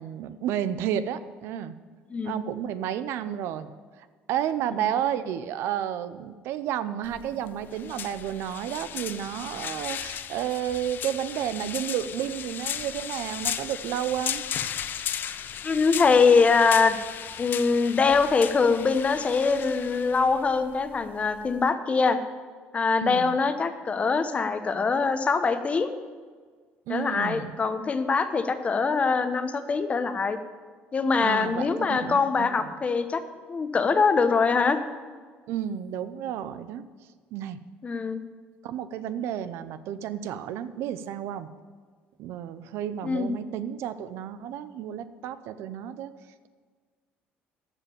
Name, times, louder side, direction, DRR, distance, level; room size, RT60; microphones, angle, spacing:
voice 1, 0.0-1.7 2.2-3.7 4.0-14.4 23.0-23.4 26.9-27.6 31.2-32.7 35.5-36.8 37.3-37.6 38.6-41.5 42.2-46.1, right 10 dB, 75° right, 13 dB, 0.7 m, -31 dB
sound 1, 7.0-21.7, left 9 dB, 50° left, 0.6 m, -36 dB
voice 2, 15.6-17.0 17.4-22.2 22.7-25.9 26.9-30.4 30.9-33.2 33.5-34.8 37.8-38.2 43.0-43.3, left 4 dB, 30° left, 10 dB, 1.0 m, -23 dB
14.0 x 5.1 x 8.5 m, 1.5 s
cardioid pair, 105°, 4 cm